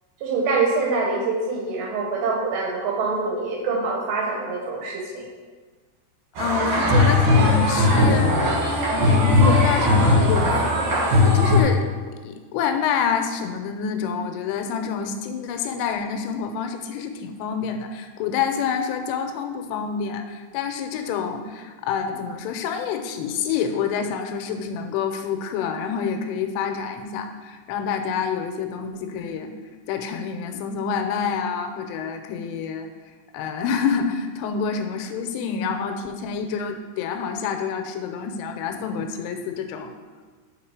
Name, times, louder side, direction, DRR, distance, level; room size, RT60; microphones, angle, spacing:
voice 1, 0.2-5.3, right 3 dB, 75° right, -1 dB, 2.7 m, -25 dB
voice 2, 6.4-8.4 8.9-11.9 12.2-29.5 29.9-32.9 33.3-39.9, left 6 dB, 90° left, 6 dB, 3.2 m, -27 dB
sound 1, 6.4-11.6, left 2 dB, 55° right, 2.1 m, -18 dB
8.1 x 4.4 x 4.7 m, 1.4 s
omnidirectional pair, 5.6 m